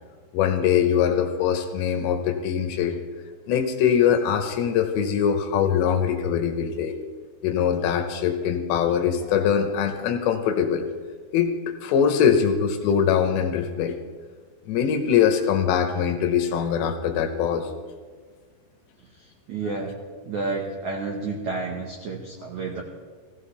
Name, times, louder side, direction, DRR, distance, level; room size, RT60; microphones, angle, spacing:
voice 1, 0.3-3.0 3.5-7.0 7.4-10.9 11.3-14.0 14.7-17.7, left 8 dB, 75° left, 6 dB, 2.9 m, -22 dB
voice 2, 19.2-19.9 20.2-22.8, right 3 dB, 80° right, 0 dB, 1.6 m, -30 dB
18.0 x 15.0 x 3.3 m, 1.5 s
omnidirectional pair, 5.4 m